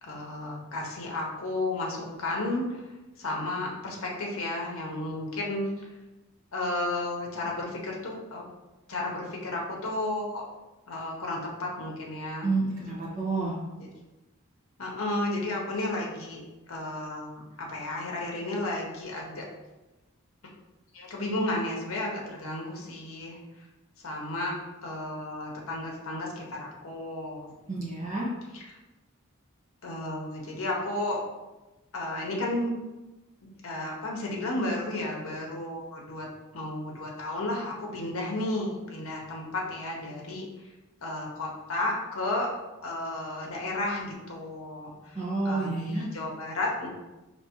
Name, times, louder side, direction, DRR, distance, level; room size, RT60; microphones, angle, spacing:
voice 1, 0.0-5.9 6.5-8.5 8.9-10.4 10.9-12.5 14.8-16.4 16.7-17.3 17.6-19.5 20.9-23.4 24.0-27.5 28.5-28.8 29.8-31.2 31.9-32.7 33.4-36.3 36.5-40.7 41.0-42.5 42.8-46.9, left 2 dB, 65° left, -1 dB, 0.8 m, -33 dB
voice 2, 12.4-13.5 27.7-28.3 45.1-46.0, right 3 dB, 35° right, -7 dB, 1.3 m, -29 dB
4.3 x 3.0 x 2.9 m, 1.1 s
head